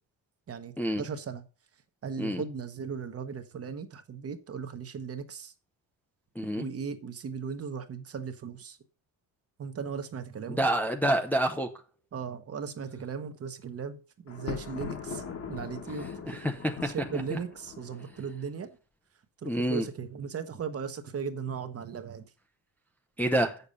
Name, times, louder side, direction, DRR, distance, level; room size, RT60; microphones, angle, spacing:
voice 1, 0.5-1.4 2.0-5.5 6.5-8.8 9.6-10.7 12.1-15.2 15.5-16.5 16.8-18.7 19.4-22.3, right 6 dB, 30° right, 1.0 m, -37 dB
voice 2, 10.6-11.7 16.3-16.9 17.3-17.4 19.4-19.8 23.2-23.6, right 1 dB, 5° left, 0.5 m, -27 dB
Thunder, 14.3-18.4, left 6 dB, 30° left, 1.2 m, -41 dB
8.6 x 6.9 x 5.3 m
cardioid pair, 175°, 45 cm